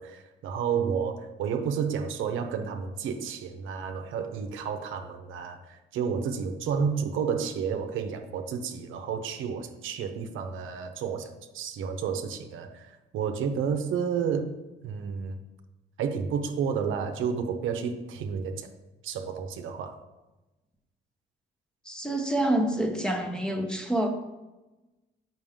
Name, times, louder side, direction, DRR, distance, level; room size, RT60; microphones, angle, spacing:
voice 1, 0.0-15.4 16.0-18.7 19.0-20.0, right 6 dB, 80° right, 6 dB, 0.7 m, -31 dB
voice 2, 21.9-24.1, right 1 dB, 5° left, 4 dB, 1.0 m, -27 dB
7.2 x 5.8 x 3.6 m, 1.1 s
cardioid pair, 90°, 20 cm